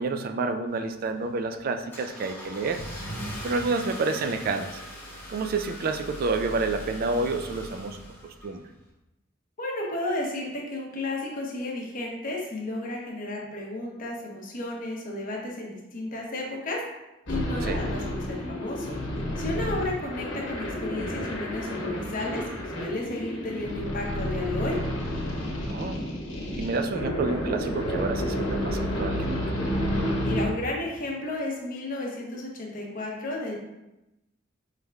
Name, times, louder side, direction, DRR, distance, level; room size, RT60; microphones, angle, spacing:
voice 1, 0.0-2.8 3.4-4.8 5.3-8.6 17.6-17.8 25.7-26.0 26.6-29.4, right 3 dB, 50° right, 7 dB, 0.3 m, -29 dB
Car / Engine starting, 0.7-8.8, equal, 10° left, 1.3 m, -40 dB
voice 2, 9.6-16.8 17.3-19.0 19.4-22.4 22.7-24.8 30.2-33.6, left 2 dB, 45° left, -1 dB, 0.9 m, -33 dB
sound 1, 17.3-30.5, equal, 65° left, 1.1 m, -30 dB
5.3 x 3.3 x 2.2 m, 0.93 s
head